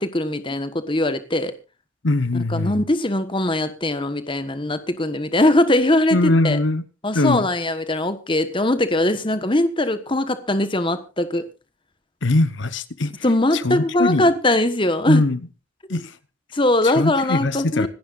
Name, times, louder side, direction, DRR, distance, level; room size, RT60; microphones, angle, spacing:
voice 1, 0.0-1.5 2.5-6.6 7.0-11.5 13.2-15.2 15.9-16.0 16.5-17.9, left 1 dB, 25° left, 1.3 m, -21 dB
voice 2, 2.0-2.8 6.1-6.8 7.1-7.5 12.2-13.1 13.5-14.3 15.1-15.4 15.9-16.1 16.8-17.9, left 2 dB, 65° left, 1.0 m, -21 dB
26.5 x 11.0 x 2.5 m
head